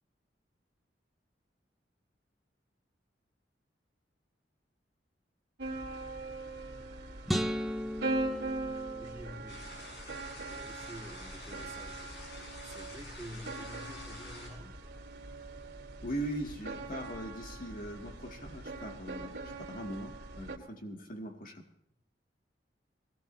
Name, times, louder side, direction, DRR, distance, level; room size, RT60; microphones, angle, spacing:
sound 1, 5.6-20.6, right 2 dB, 85° right, 2.5 m, -41 dB
sound 2, 7.3-9.6, equal, ahead, 0.7 m, -35 dB
voice 1, 8.9-9.7 10.5-14.8, equal, 15° right, -3 dB, 2.2 m, -49 dB
sound 3, 9.5-14.5, left 1 dB, 70° left, 8.0 m, -49 dB
voice 2, 16.0-21.6, right 1 dB, 50° left, 3 dB, 2.0 m, -40 dB
22.0 x 18.0 x 2.7 m, 0.79 s
head